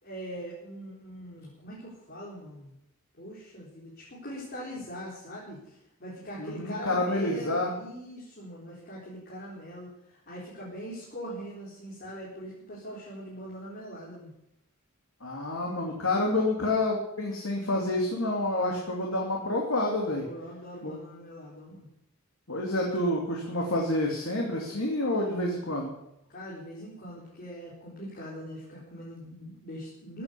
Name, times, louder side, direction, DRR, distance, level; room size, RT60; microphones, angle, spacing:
voice 1, 0.0-2.7 3.2-14.3 20.2-21.9 26.3-30.2, equal, 50° left, -6 dB, 4.3 m, -42 dB
voice 2, 6.4-7.7 15.2-20.2 20.8-21.0 22.5-25.9, left 1 dB, 85° left, -1 dB, 2.8 m, -28 dB
15.0 x 8.9 x 8.4 m, 0.81 s
head